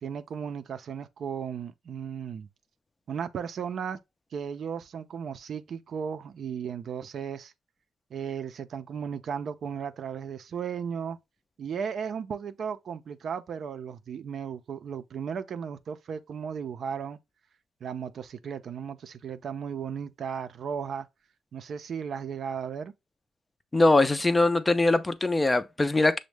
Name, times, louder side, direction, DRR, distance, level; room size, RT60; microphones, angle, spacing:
voice 1, 0.0-2.5 3.1-4.0 4.3-7.5 8.1-11.2 11.6-17.2 17.8-21.1 21.5-22.9, right 7 dB, 60° right, 0.4 m, -35 dB
voice 2, 23.7-26.2, left 2 dB, 20° left, 0.4 m, -22 dB
6.1 x 2.1 x 3.2 m
cardioid pair, 90°, 0 cm